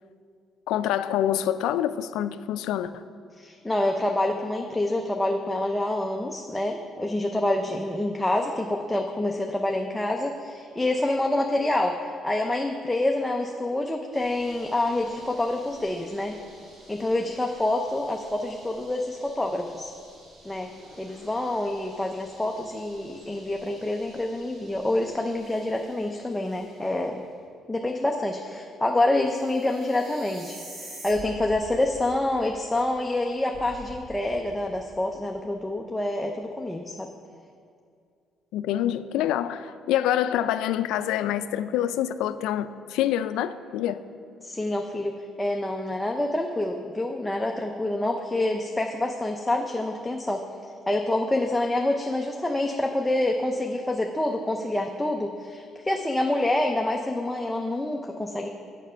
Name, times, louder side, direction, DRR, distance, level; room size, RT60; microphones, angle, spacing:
voice 1, 0.7-3.0 38.5-44.0, left 11 dB, 90° left, 0.3 m, -26 dB
voice 2, 3.4-16.4 16.9-19.9 20.4-20.7 21.0-27.2 27.7-37.1 44.4-45.1 45.4-58.5, left 1 dB, 10° left, 0.5 m, -27 dB
sound 1, 14.1-27.1 29.2-31.1, right 1 dB, 50° right, 1.8 m, -50 dB
sound 2, 31.1-35.8, equal, 25° right, 2.4 m, -46 dB
7.3 x 6.6 x 5.5 m
cardioid pair, 120°, 0 cm